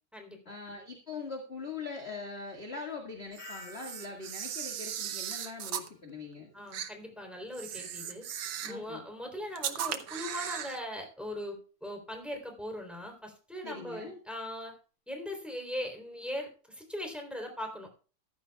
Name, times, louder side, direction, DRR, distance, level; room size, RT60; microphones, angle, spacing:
voice 1, 0.4-6.5 8.6-9.0 13.6-14.2, left 4 dB, 25° left, 2 dB, 1.5 m, -42 dB
Camera, 3.3-5.9 6.7-6.9 7.5-8.8 9.5-10.8, right 9 dB, 75° right, 1.1 m, -37 dB
sound 1, 3.4-6.2 6.5-7.0, left 3 dB, 65° left, 4.1 m, -53 dB
voice 2, 6.5-8.3 8.6-14.7 15.1-17.9, left 1 dB, ahead, 3 dB, 3.1 m, -40 dB
14.5 x 13.0 x 2.3 m, 0.37 s
omnidirectional pair, 3.5 m